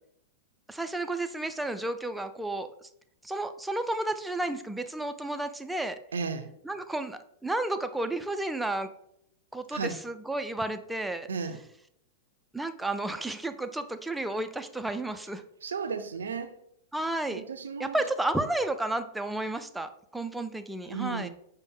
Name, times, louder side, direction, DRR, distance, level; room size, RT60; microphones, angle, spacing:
voice 1, 0.7-2.9 3.2-6.0 6.6-8.9 9.5-11.3 12.5-15.4 16.9-17.4 17.8-21.3, right 2 dB, 5° right, 8 dB, 0.3 m, -32 dB
voice 2, 6.1-6.5 9.7-10.0 11.3-11.6 15.6-16.6 17.3-18.0 20.9-21.3, right 5 dB, 80° right, 9 dB, 0.4 m, -34 dB
5.1 x 2.1 x 3.6 m, 0.73 s
hypercardioid pair, 100°, 0 cm